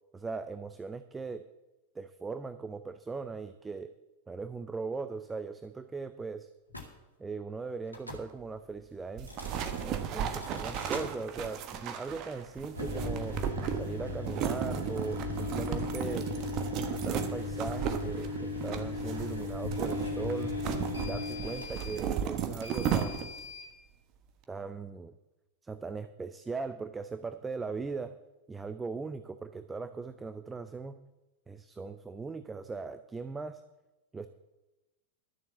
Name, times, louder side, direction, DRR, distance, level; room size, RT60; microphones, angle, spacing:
voice 1, 0.1-1.4 2.0-3.9 4.3-6.5 7.2-9.3 9.8-13.4 13.7-16.3 16.7-20.5 21.0-23.3 24.5-25.1 25.6-28.1 28.5-31.0 31.5-33.6 34.1-34.3, right 4 dB, 15° right, 11 dB, 0.5 m, -39 dB
sound 1, 6.7-6.9 7.9-8.3 9.2-9.9 10.3-11.1 12.6-23.7, left 3 dB, 85° left, 2.0 m, -38 dB
sound 2, 9.2-23.5, right 8 dB, 40° right, 1.2 m, -35 dB
12.0 x 7.1 x 7.3 m, 1.1 s
figure-of-eight pair, 90°, 0 cm